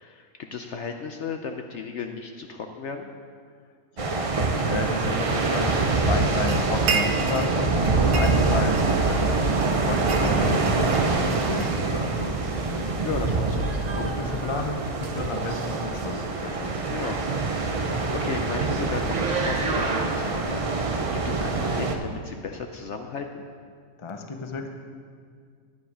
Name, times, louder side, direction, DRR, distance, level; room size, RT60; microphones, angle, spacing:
voice 1, 0.0-3.1 13.0-13.7 16.9-17.4 17.8-23.4, left 5 dB, 65° left, 5 dB, 0.7 m, -35 dB
voice 2, 3.9-9.3 9.8-12.9 13.9-16.8 24.0-24.7, left 3 dB, 35° left, 5 dB, 0.5 m, -32 dB
sound 1, 4.0-21.9, right 3 dB, 60° right, 0.3 m, -25 dB
sound 2, 4.6-20.4, right 3 dB, 35° right, 0.7 m, -35 dB
sound 3, 6.5-7.5 7.8-9.1 9.5-12.2, right 5 dB, 85° right, 1.3 m, -32 dB
9.7 x 9.5 x 4.9 m, 2.1 s
omnidirectional pair, 1.6 m